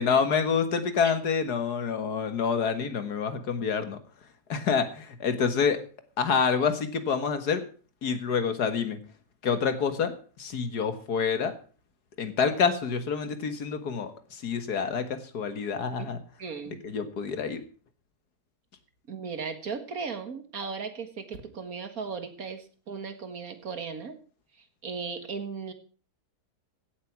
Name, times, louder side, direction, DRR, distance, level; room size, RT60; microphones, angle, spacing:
voice 1, 0.0-4.0 4.5-5.8 6.2-7.6 8.0-9.0 9.4-11.5 12.2-16.2 16.8-17.6, left 6 dB, 85° left, 10 dB, 2.2 m, -27 dB
voice 2, 16.4-16.8 19.1-24.2 24.8-25.7, right 5 dB, 65° right, 9 dB, 2.2 m, -36 dB
16.0 x 8.4 x 6.0 m, 0.40 s
omnidirectional pair, 1.6 m